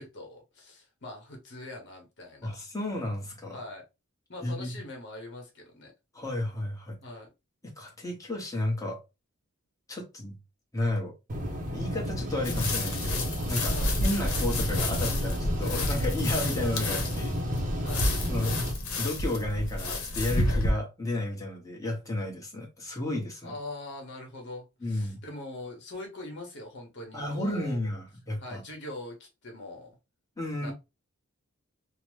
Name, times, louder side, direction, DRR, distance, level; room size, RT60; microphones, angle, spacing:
voice 1, 0.0-2.5 3.5-3.8 4.3-5.9 7.0-7.3 13.7-13.9 17.8-18.1 23.4-27.9 28.4-30.0 30.6-30.7, left 2 dB, 55° left, 1.1 m, -42 dB
voice 2, 2.4-3.6 4.4-4.7 6.1-7.0 7.8-9.0 9.9-10.4 10.7-11.1 11.7-17.3 18.3-18.6 19.0-23.5 24.8-25.2 27.1-28.6 30.4-30.7, left 1 dB, 15° left, 0.9 m, -32 dB
sound 1, 11.3-18.7, equal, 40° right, 0.7 m, -32 dB
sound 2, 12.4-20.7, left 1 dB, 80° left, 0.8 m, -30 dB
2.9 x 2.1 x 3.1 m
head